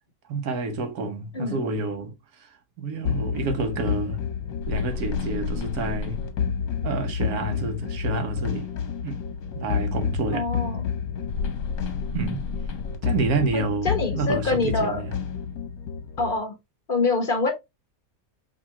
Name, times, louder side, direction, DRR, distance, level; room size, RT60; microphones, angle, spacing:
voice 1, 0.3-2.1 2.8-4.2 4.7-6.2 6.8-8.7 9.0-9.2 9.5-10.5 12.1-12.4 13.0-15.2, right 3 dB, 85° right, 1.4 m, -28 dB
sound 1, 3.0-16.3, left 6 dB, 70° left, 1.3 m, -29 dB
voice 2, 10.3-10.9 13.5-15.0 16.2-16.5 16.9-17.5, left 3 dB, 40° left, 1.2 m, -25 dB
5.1 x 3.1 x 2.8 m
omnidirectional pair, 1.5 m